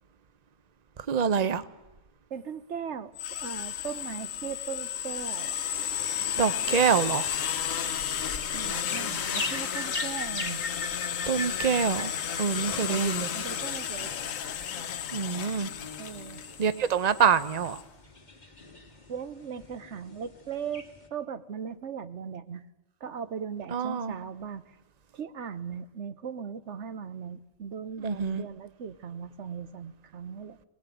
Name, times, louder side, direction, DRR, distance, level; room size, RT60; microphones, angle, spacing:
voice 1, 1.1-1.6 6.4-7.3 11.3-12.1 12.4-13.3 15.1-15.7 16.6-17.8 23.7-24.1 28.0-28.4, right 7 dB, 35° right, 13 dB, 0.8 m, -26 dB
voice 2, 2.3-5.6 8.5-10.6 12.9-14.1 16.0-16.4 19.1-20.8 21.1-22.6 23.0-24.8 25.1-30.6, right 7 dB, 60° right, 12 dB, 1.3 m, -38 dB
sound 1, 3.2-17.8, left 9 dB, 75° left, 1.3 m, -33 dB
sound 2, 5.8-21.1, left 2 dB, 35° left, 2.2 m, -42 dB
21.0 x 19.0 x 9.3 m, 1.0 s
omnidirectional pair, 1.4 m